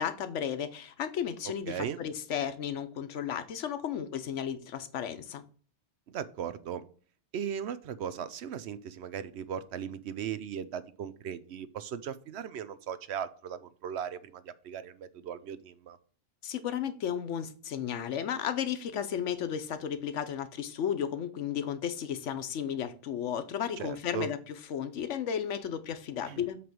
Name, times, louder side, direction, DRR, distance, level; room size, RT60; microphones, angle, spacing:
voice 1, 0.0-5.4 16.4-24.4 24.7-26.6, left 8 dB, 85° left, 1.1 m, -34 dB
voice 2, 1.7-2.0 6.1-6.8 7.3-16.0 23.8-24.3 26.2-26.5, right 8 dB, 70° right, 0.9 m, -38 dB
7.7 x 3.4 x 6.0 m
omnidirectional pair, 1.2 m